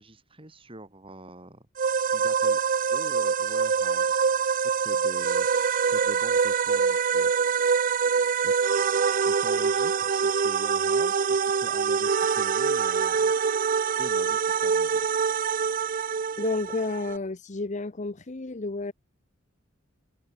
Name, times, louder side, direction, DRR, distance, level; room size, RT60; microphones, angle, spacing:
voice 1, 0.0-1.7 2.0-2.6 2.9-4.4 4.7-5.5 5.8-7.3 8.0-8.7 9.3-13.3 14.0-15.0, right 1 dB, 25° right, 3.5 m, -45 dB
sound 1, 1.8-17.2, right 6 dB, 40° right, 0.5 m, -25 dB
voice 2, 16.4-18.9, left 2 dB, 35° left, 0.8 m, -31 dB
head